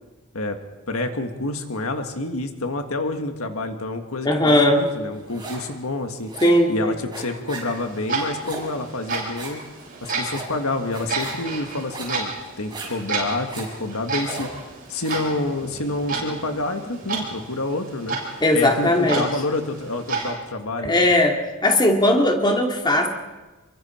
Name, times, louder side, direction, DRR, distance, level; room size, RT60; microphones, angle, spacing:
voice 1, 0.9-6.3 6.7-9.6 10.0-12.3 12.6-14.5 14.9-18.2 18.5-21.1, left 2 dB, 75° left, 5 dB, 1.8 m, -28 dB
voice 2, 4.2-4.8 6.4-7.0 18.4-19.3 20.8-21.4 21.6-23.1, left 1 dB, 20° left, 2 dB, 2.4 m, -18 dB
sound 1, 4.9-5.7 6.0-15.3, right 2 dB, 20° right, 7.5 m, -38 dB
Clock, 7.7-20.3, right 4 dB, 45° right, 8.0 m, -32 dB
28.0 x 23.5 x 4.5 m, 1.2 s
head